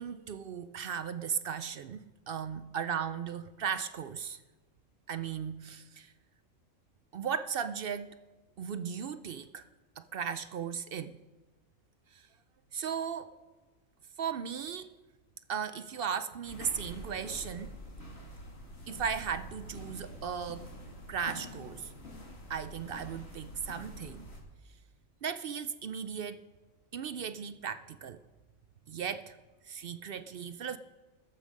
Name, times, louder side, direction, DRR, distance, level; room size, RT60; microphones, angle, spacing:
voice 1, 0.0-4.4 5.1-6.1 7.1-8.1 8.6-9.7 10.0-11.2 12.1-12.3 12.7-13.4 14.2-14.9 15.5-17.7 18.9-20.7 21.1-21.9 22.5-24.3 25.2-26.4 26.9-28.2 28.9-29.4 29.6-30.8, right 7 dB, 60° right, 0.6 m, -36 dB
sound 1, 16.5-24.4, equal, 50° left, 2.5 m, -46 dB
13.5 x 12.5 x 5.2 m
omnidirectional pair, 1.4 m